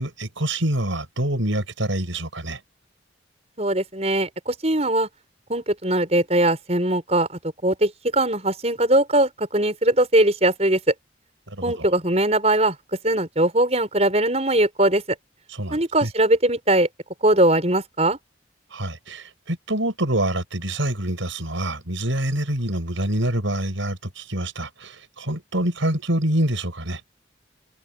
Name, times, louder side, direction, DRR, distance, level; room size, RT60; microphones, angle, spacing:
voice 1, 0.0-2.6 11.5-11.9 15.5-16.1 18.7-27.0, right 1 dB, 90° right, 6.5 m, -26 dB
voice 2, 3.6-5.1 5.5-7.3 7.6-10.8 11.6-12.8 13.0-15.0 15.7-16.9 17.2-18.2, right 1 dB, 35° right, 7.2 m, -20 dB
head